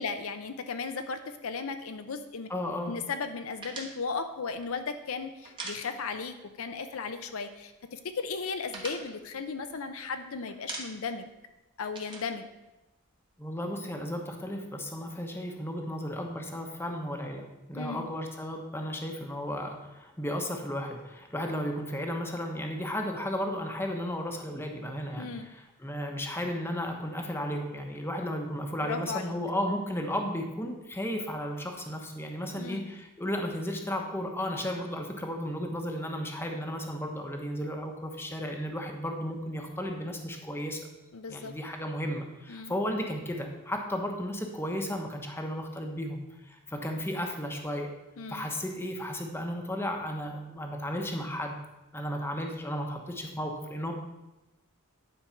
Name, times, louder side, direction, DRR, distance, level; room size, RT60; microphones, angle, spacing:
voice 1, 0.0-2.5 2.9-11.3 11.8-12.5 17.7-18.1 25.2-25.5 28.9-29.3 32.6-32.9 41.1-41.5 42.5-42.8 48.2-48.5, left 4 dB, 65° left, 8 dB, 0.6 m, -36 dB
voice 2, 2.5-3.0 13.4-40.8 41.3-47.9 48.3-51.6 51.9-53.9, equal, 10° left, 2 dB, 1.0 m, -34 dB
sound 1, 3.6-6.4 6.7-6.8 7.1-7.8 8.2-10.2 10.5-11.2 11.5-13.3, right 3 dB, 20° right, 1.4 m, -43 dB
10.0 x 4.6 x 5.8 m, 1.0 s
head